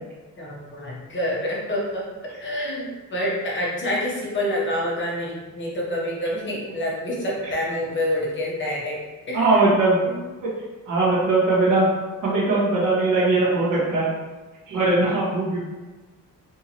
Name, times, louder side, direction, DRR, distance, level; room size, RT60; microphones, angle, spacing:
voice 1, 0.4-2.0 2.4-9.0 9.3-9.6 10.0-10.3, left 1 dB, 35° left, -4 dB, 1.0 m, -27 dB
voice 2, 9.3-10.0 10.9-11.9 12.2-14.1 14.7-15.6, right 2 dB, 70° right, -9 dB, 1.5 m, -20 dB
3.6 x 2.8 x 2.9 m, 1.2 s
wide cardioid pair, 150°, 33 cm